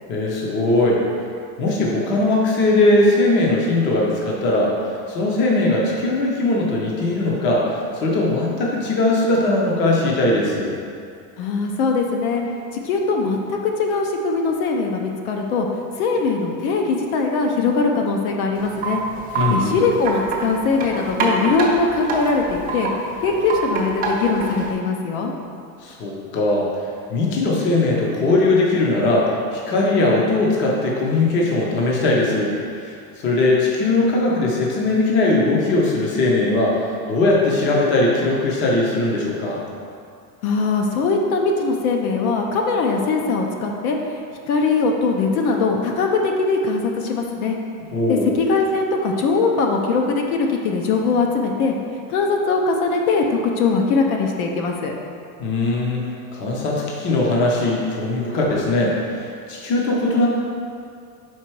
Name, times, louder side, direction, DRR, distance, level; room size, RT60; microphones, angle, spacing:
voice 1, 0.1-1.0 1.6-10.7 19.4-19.8 25.8-26.7 27.1-32.9 33.2-36.8 37.1-39.6 47.9-48.3 55.4-56.0 56.3-60.3, left 2 dB, 25° left, -3 dB, 0.6 m, -20 dB
voice 2, 11.4-12.4 12.8-15.7 16.0-19.0 19.5-22.9 23.2-25.3 40.4-44.0 44.5-47.6 48.1-51.7 52.1-54.9, left 4 dB, 60° left, 2 dB, 0.8 m, -21 dB
Wind chime, 18.5-24.7, right 3 dB, 20° right, 0.5 m, -26 dB
5.2 x 4.4 x 4.6 m, 2.4 s
supercardioid pair, 160°, 49 cm